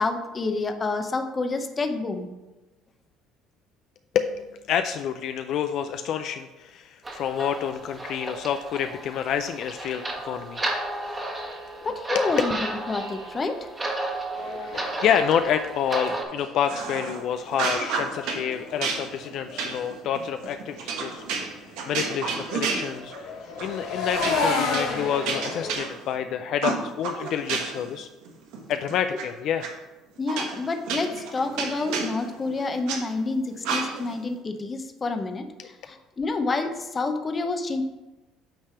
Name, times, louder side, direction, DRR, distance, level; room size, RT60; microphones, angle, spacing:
voice 1, 0.0-2.3 11.8-13.6 30.2-37.8, left 3 dB, 25° left, 6 dB, 0.7 m, -28 dB
voice 2, 4.1-10.7 12.1-12.2 14.7-21.5 21.9-23.3 23.6-28.1 28.7-29.7, left 8 dB, 60° left, 8 dB, 0.3 m, -28 dB
sound 1, 7.0-16.2, right 2 dB, 20° right, 1.4 m, -33 dB
sound 2, 14.4-17.5 17.9-19.8 20.1-20.4 20.7-21.0 22.5-25.7, left 4 dB, 80° left, 2.3 m, -32 dB
sound 3, 16.7-17.2 17.5-18.4 18.8-23.3 23.6-23.8 24.1-26.2 26.6-27.9 28.2-29.2 29.6-29.7 30.3-33.0 33.6-34.2, right 5 dB, 80° right, 1.3 m, -31 dB
8.8 x 3.3 x 5.6 m, 1.1 s
cardioid pair, 125°, 0 cm